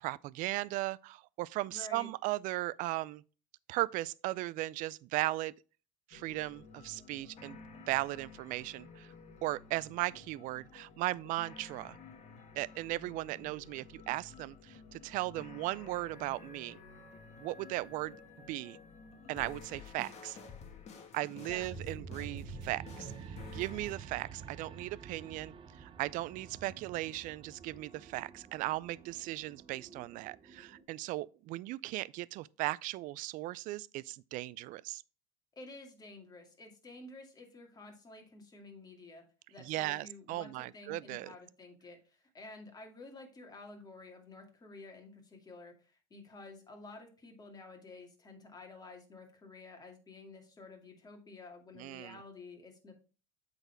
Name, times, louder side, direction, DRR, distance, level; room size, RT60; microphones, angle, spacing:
voice 1, 0.0-3.2 3.7-5.5 6.1-7.6 7.9-9.1 9.4-12.0 12.6-16.8 17.4-18.1 18.5-18.8 19.3-20.4 21.1-35.0 39.6-41.3 51.8-52.2, right 18 dB, 50° right, 0.4 m, -37 dB
voice 2, 1.7-2.1 21.5-21.7 35.5-39.2 39.5-53.0, left 3 dB, 25° left, 2.2 m, -51 dB
sound 1, 6.1-24.0, left 5 dB, 40° left, 1.5 m, -52 dB
sound 2, 21.6-30.8, right 6 dB, 30° right, 0.9 m, -49 dB
8.0 x 4.0 x 4.5 m
supercardioid pair, 95°, 17 cm